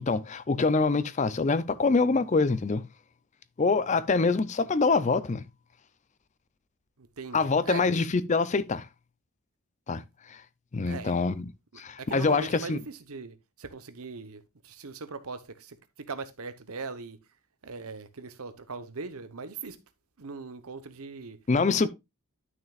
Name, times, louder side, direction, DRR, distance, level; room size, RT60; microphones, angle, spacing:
voice 1, 0.0-2.8 3.6-5.4 7.3-8.9 9.9-10.0 10.3-10.4 10.7-12.8 21.5-21.9, left 4 dB, 30° left, 0.4 m, -25 dB
voice 2, 7.0-7.9 10.9-11.1 12.0-17.2 17.6-19.8 20.2-21.4, right 4 dB, 80° right, 1.0 m, -40 dB
11.0 x 6.3 x 2.4 m
head